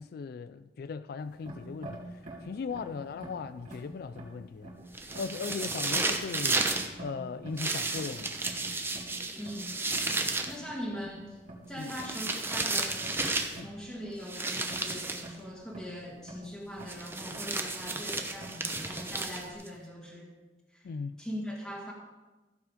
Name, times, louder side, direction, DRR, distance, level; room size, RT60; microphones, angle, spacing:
voice 1, 0.0-2.0 2.4-4.7 5.1-6.6 7.0-8.4 11.8-11.9 13.5-13.7 20.8-21.1, left 5 dB, 60° left, 0.3 m, -38 dB
sound 1, 1.2-19.5, right 1 dB, 45° right, 2.8 m, -49 dB
sound 2, 4.9-6.9 7.6-10.5 11.8-13.6 14.3-15.3 16.9-19.7, right 3 dB, 15° right, 1.0 m, -32 dB
voice 2, 9.3-9.8 10.5-11.4 11.7-13.1 13.6-20.3 20.7-20.9 21.2-21.9, equal, 5° left, 1.9 m, -41 dB
14.5 x 7.3 x 5.1 m
head